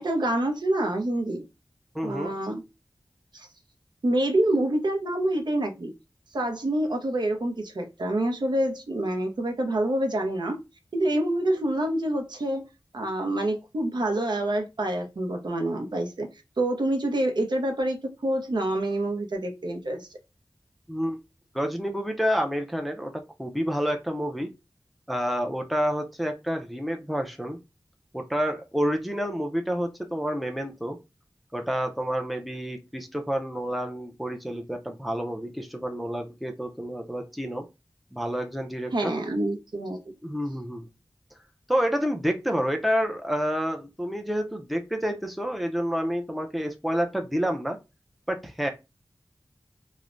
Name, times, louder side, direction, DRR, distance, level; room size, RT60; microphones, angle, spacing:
voice 1, 0.0-1.5 2.0-2.6 3.3-3.5 4.0-5.9 6.3-10.6 10.9-12.7 12.9-16.3 16.6-20.1 38.9-40.0, right 1 dB, 65° right, 0.6 m, -27 dB
voice 2, 1.9-2.3 20.9-21.2 21.5-23.1 23.4-24.5 25.1-27.6 28.1-31.0 31.5-37.7 38.1-39.1 40.2-40.9 41.7-47.8 48.3-48.7, equal, ahead, 0.4 m, -29 dB
3.1 x 2.0 x 2.4 m
wide cardioid pair, 60°, 8 cm